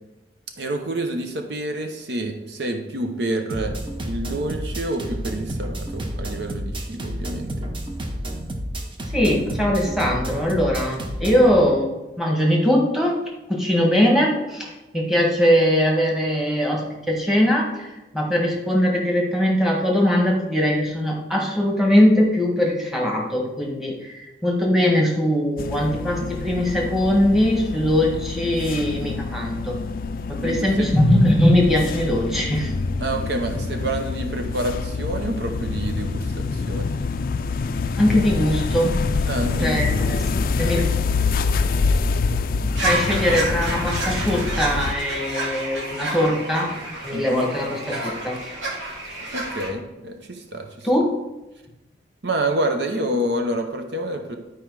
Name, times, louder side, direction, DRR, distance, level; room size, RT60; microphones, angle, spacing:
voice 1, 0.6-3.8 4.0-7.7 30.4-30.9 33.0-37.0 39.3-39.9 47.1-47.5 49.3-50.9 52.2-54.4, right 1 dB, 65° right, 4 dB, 0.8 m, -28 dB
sound 1, 3.5-11.5, right 1 dB, 25° right, 0.8 m, -30 dB
voice 2, 9.1-13.2 13.5-29.7 30.3-32.7 38.0-38.9 39.6-40.2 40.6-40.9 42.8-46.7 47.0-48.4 50.8-51.1, equal, ahead, -2 dB, 1.4 m, -21 dB
sound 2, 25.6-44.9, left 4 dB, 50° left, 0.4 m, -26 dB
sound 3, 42.8-49.7, right 2 dB, 90° right, 2.0 m, -29 dB
10.5 x 4.6 x 4.7 m, 1.0 s
head